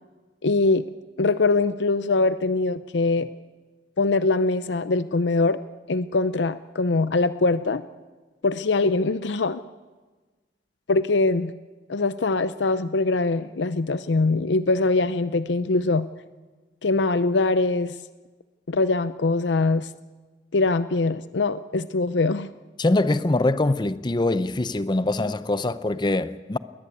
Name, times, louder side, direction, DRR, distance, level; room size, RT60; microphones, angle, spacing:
voice 1, 0.4-0.8 1.2-3.3 4.0-5.6 5.9-7.8 8.4-9.6 10.9-11.5 11.9-16.1 16.8-17.9 18.7-19.9 20.5-22.5, left 3 dB, 75° left, 0.6 m, -22 dB
voice 2, 22.8-26.6, left 2 dB, 25° left, 0.6 m, -23 dB
21.5 x 19.5 x 8.3 m
head